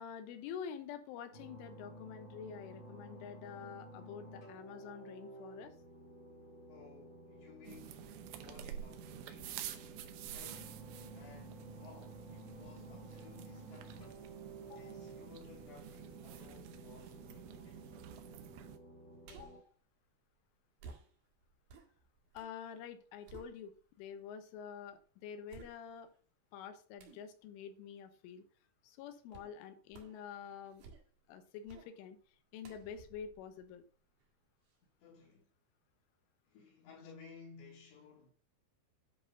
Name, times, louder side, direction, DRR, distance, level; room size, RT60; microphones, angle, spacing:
voice 1, 0.0-5.7 14.6-14.9 19.3-19.6 22.4-26.1 26.5-28.4 28.8-30.8 31.3-32.2 32.5-33.8, left 7 dB, 85° left, 3.5 m, -48 dB
sound 1, 1.3-19.6, right 1 dB, 35° left, 2.0 m, -53 dB
voice 2, 6.7-9.7 10.3-10.9 11.1-14.1 14.7-18.1 35.0-35.5 36.5-38.3, left 5 dB, 65° left, 4.2 m, -58 dB
sound 2, 7.6-18.8, right 11 dB, 80° right, 3.0 m, -49 dB
sound 3, 19.2-19.7 20.8-22.6 22.9-24.0 24.6-24.7 25.5-26.2 27.0-27.3 29.3-29.6 29.9-30.3 30.6-31.3 31.7-31.9 32.6-34.3 34.7-34.8, right 4 dB, 60° right, 2.7 m, -56 dB
10.5 x 4.4 x 5.2 m
omnidirectional pair, 5.5 m